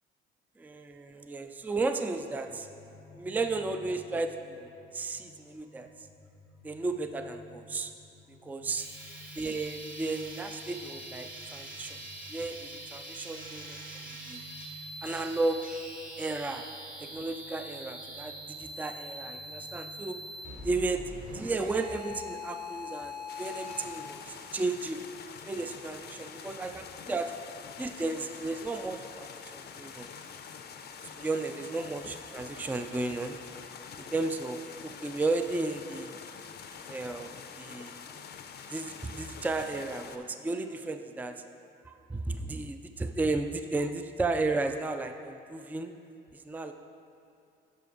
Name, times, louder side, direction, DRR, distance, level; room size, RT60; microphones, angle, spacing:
voice 1, 0.6-2.7 3.1-6.1 6.6-7.9 8.4-8.9 9.4-12.0 12.3-14.4 15.0-15.6 16.2-16.7 17.0-20.2 20.6-25.0 25.5-27.3 27.8-30.1 31.0-33.4 33.9-36.2 36.9-38.0 38.7-41.4 41.8-45.9 46.3-46.7, right 3 dB, 10° right, 7 dB, 0.3 m, -34 dB
sound 1, 2.4-19.9, left 1 dB, 70° right, 1.9 m, -54 dB
sound 2, 8.8-23.9, equal, 45° right, 1.6 m, -43 dB
sound 3, 23.3-40.2, left 6 dB, 55° left, 0.6 m, -46 dB
9.3 x 5.9 x 3.9 m, 2.7 s
cardioid pair, 90°, 20 cm